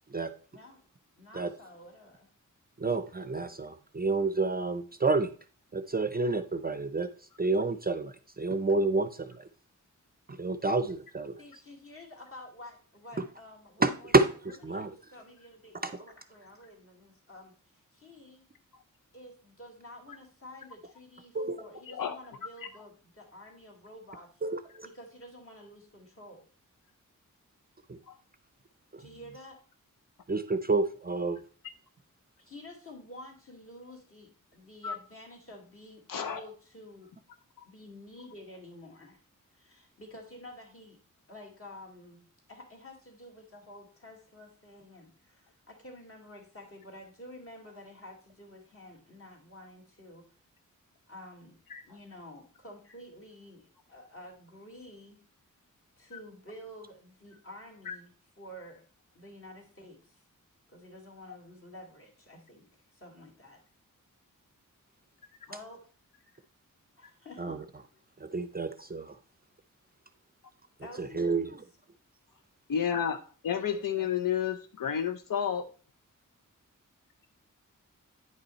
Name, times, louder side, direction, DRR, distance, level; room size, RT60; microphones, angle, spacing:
voice 1, 0.5-0.8 1.2-2.3 11.4-14.2 14.7-18.5 19.1-24.4 24.8-26.5 29.0-29.6 32.4-37.1 37.6-39.2 39.5-41.0 41.3-50.3 51.1-51.6 51.8-55.2 56.0-58.9 59.1-60.2 60.7-63.6 65.5-65.8 66.2-66.5 67.0-67.6 70.8-71.6 73.5-74.1, left 1 dB, 40° left, 1 dB, 2.4 m, -50 dB
voice 2, 2.8-5.3 5.7-7.1 7.4-9.5 10.3-11.4 13.8-14.9 15.8-15.9 21.3-21.6 24.4-24.9 27.9-28.0 30.3-31.4 67.4-67.6 68.2-69.2 71.0-71.5, right 3 dB, 30° right, 10 dB, 0.5 m, -29 dB
voice 3, 21.9-22.2 28.1-28.2 34.8-34.9 36.1-36.4 51.7-51.8 57.9-58.0 72.7-73.2 73.4-75.6, left 8 dB, 80° left, 8 dB, 0.7 m, -30 dB
9.5 x 5.3 x 4.2 m, 0.40 s
wide cardioid pair, 145°, 32 cm